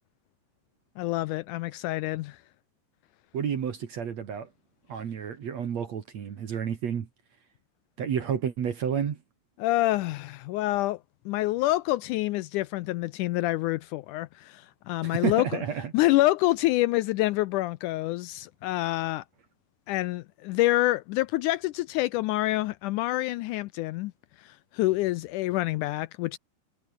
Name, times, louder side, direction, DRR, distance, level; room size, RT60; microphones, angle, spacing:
voice 1, 1.0-2.4 9.6-11.0 11.3-15.6 15.9-19.2 19.9-24.1 24.4-26.4, left 17 dB, 90° left, 1.8 m, -27 dB
voice 2, 3.3-4.5 4.9-7.1 8.0-9.2 15.0-15.9, right 8 dB, 50° right, 2.8 m, -30 dB
omnidirectional pair, 4.2 m